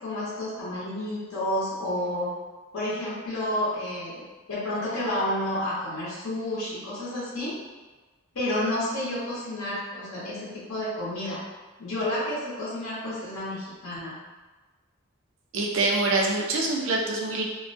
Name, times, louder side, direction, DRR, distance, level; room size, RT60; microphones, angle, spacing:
voice 1, 0.0-2.3 2.7-4.2 4.5-7.6 8.3-11.4 11.8-14.1, left 1 dB, 70° left, -9 dB, 0.8 m, -30 dB
voice 2, 15.5-17.4, right 2 dB, 60° right, -2 dB, 0.4 m, -25 dB
2.3 x 2.1 x 2.5 m, 1.3 s
head